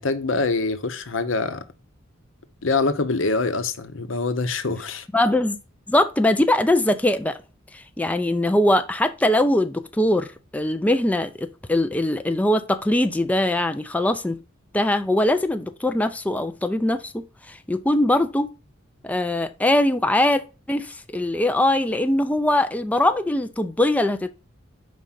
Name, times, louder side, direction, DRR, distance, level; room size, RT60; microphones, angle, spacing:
voice 1, 0.0-1.6 2.6-5.1, left 3 dB, 80° left, 0.8 m, -24 dB
voice 2, 5.1-5.6 5.9-7.4 7.7-10.3 10.5-14.4 14.7-18.5 19.0-20.4 20.7-24.3, left 1 dB, 10° left, 0.4 m, -21 dB
5.2 x 3.7 x 5.7 m
head